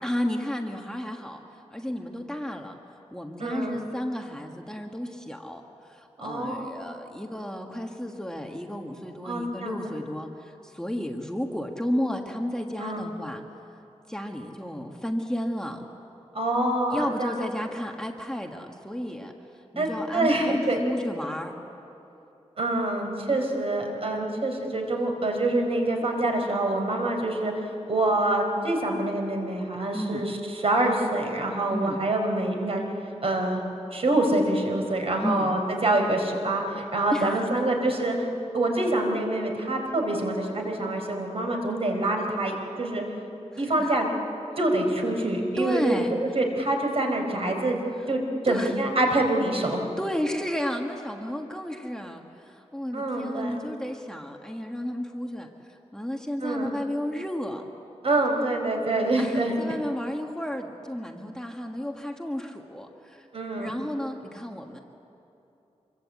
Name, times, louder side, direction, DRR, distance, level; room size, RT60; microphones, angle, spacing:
voice 1, 0.0-1.4 1.7-2.7 3.1-5.6 5.9-13.4 14.1-15.8 16.9-19.3 19.7-21.5 29.9-30.3 31.7-32.0 35.2-35.5 37.1-37.4 43.5-43.9 45.6-46.2 48.5-48.7 50.0-57.6 59.2-63.3 63.5-64.8, equal, 5° left, 2 dB, 1.4 m, -32 dB
voice 2, 3.4-3.9 6.2-6.9 9.2-9.8 12.8-13.0 16.3-17.4 19.8-20.8 22.6-27.5 27.9-32.8 33.2-33.6 33.9-38.2 38.5-43.0 43.6-44.1 44.6-47.8 48.1-49.8 52.9-53.5 56.4-56.7 58.0-59.6 63.3-63.7, right 2 dB, 55° right, 2 dB, 4.4 m, -26 dB
26.0 x 23.0 x 8.5 m, 2.9 s
wide cardioid pair, 125°, 12 cm